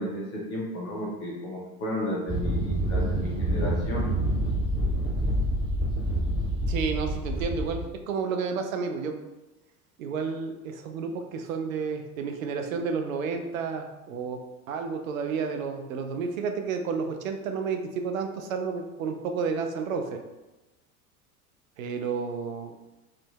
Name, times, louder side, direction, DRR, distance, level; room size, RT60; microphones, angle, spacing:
voice 1, 0.0-4.1, left 1 dB, 30° left, -3 dB, 0.6 m, -33 dB
sound 1, 2.3-7.9, right 1 dB, 15° right, 1.1 m, -27 dB
voice 2, 6.7-9.1 10.0-14.4 14.7-20.2 21.8-22.7, right 5 dB, 65° right, 5 dB, 0.5 m, -31 dB
2.7 x 2.4 x 2.2 m, 1.1 s
figure-of-eight pair, 80°, 45 cm